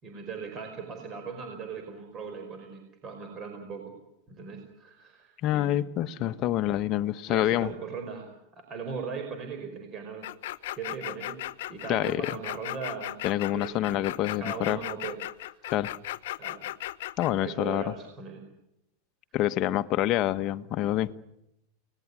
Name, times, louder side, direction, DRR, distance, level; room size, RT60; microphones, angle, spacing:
voice 1, 0.0-3.9 4.3-5.8 6.2-6.3 7.3-8.4 8.7-10.3 10.8-11.4 11.7-13.2 13.5-15.2 15.5-15.6 16.3-16.6 17.4-18.4, right 5 dB, 25° right, 5.1 m, -39 dB
voice 2, 5.4-7.7 11.9-12.4 13.2-14.8 15.7-15.9 17.2-17.9 19.3-21.1, left 13 dB, 35° left, 1.1 m, -27 dB
sound 1, 10.2-17.3, left 15 dB, 70° left, 1.0 m, -36 dB
30.0 x 20.0 x 9.8 m
supercardioid pair, 155°, 0 cm